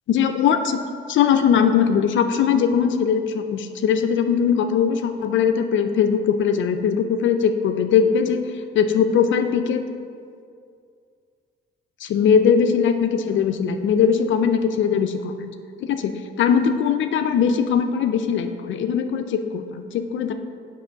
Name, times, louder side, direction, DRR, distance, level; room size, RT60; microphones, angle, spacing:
voice 1, 0.1-0.8 1.1-8.5 8.7-9.8 12.0-15.5 15.8-20.3, left 7 dB, 65° left, 7 dB, 0.5 m, -20 dB
8.3 x 3.0 x 5.7 m, 2.3 s
cardioid pair, 105°, 21 cm